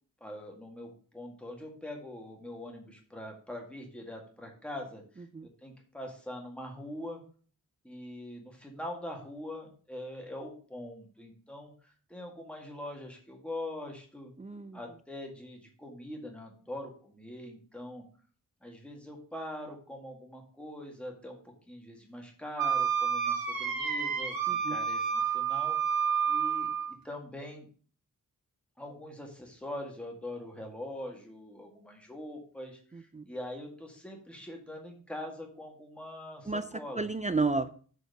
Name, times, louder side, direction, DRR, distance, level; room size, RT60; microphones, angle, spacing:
voice 1, 0.2-7.2 7.8-14.3 14.7-18.0 18.6-21.4 21.7-25.8 26.3-27.7 28.8-37.0, left 1 dB, 5° left, 1 dB, 1.9 m, -43 dB
voice 2, 14.4-14.8 24.5-24.8 32.9-33.3 36.5-36.7 37.0-37.7, right 3 dB, 20° right, 11 dB, 0.3 m, -32 dB
Wind instrument woodwind instrument, 22.6-26.9, right 7 dB, 80° right, 1.8 m, -29 dB
6.8 x 4.6 x 6.5 m, 0.43 s
wide cardioid pair, 150°, 34 cm